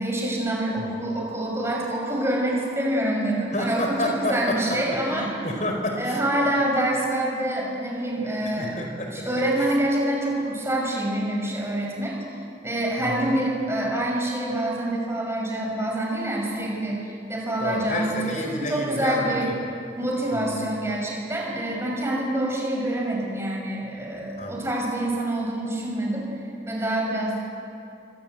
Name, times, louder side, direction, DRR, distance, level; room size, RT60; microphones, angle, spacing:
voice 1, 0.0-5.3 6.0-8.7 9.1-12.1 12.6-19.5 20.0-26.2 26.7-27.4, right 1 dB, 15° right, -1 dB, 6.1 m, -26 dB
voice 2, 3.5-6.2 8.5-9.3 13.0-13.3 17.6-19.5 20.3-20.6 24.4-24.6, left 1 dB, 45° left, 3 dB, 4.6 m, -30 dB
27.5 x 24.5 x 7.9 m, 2.7 s
head